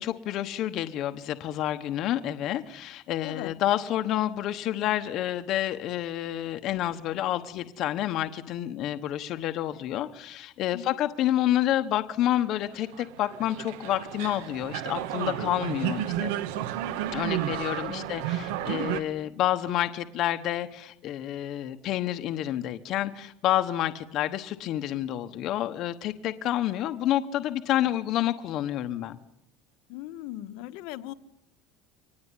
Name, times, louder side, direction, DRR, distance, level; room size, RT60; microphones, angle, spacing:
voice 1, 0.0-16.3 17.1-29.2, left 12 dB, 40° left, 8 dB, 1.1 m, -29 dB
sound 1, 12.7-19.0, right 11 dB, 70° right, 1.7 m, -32 dB
voice 2, 29.9-31.1, left 15 dB, 60° left, 10 dB, 1.3 m, -38 dB
25.0 x 19.5 x 9.9 m, 0.82 s
cardioid pair, 180°, 0 cm